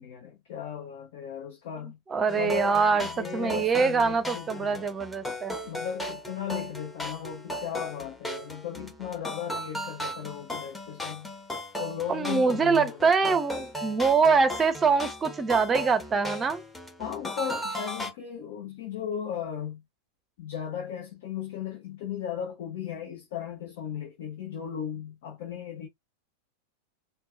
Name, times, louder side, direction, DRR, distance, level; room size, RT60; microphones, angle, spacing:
voice 1, 0.0-2.0 2.3-4.9 5.6-11.3 11.8-13.3 17.0-19.8 20.4-25.9, left 9 dB, 50° left, 1.1 m, -36 dB
voice 2, 2.1-5.6 12.1-16.6, right 5 dB, 20° right, 0.7 m, -24 dB
sound 1, 2.3-18.1, left 1 dB, 5° left, 1.1 m, -37 dB
4.5 x 2.2 x 2.6 m
figure-of-eight pair, 90°, 0 cm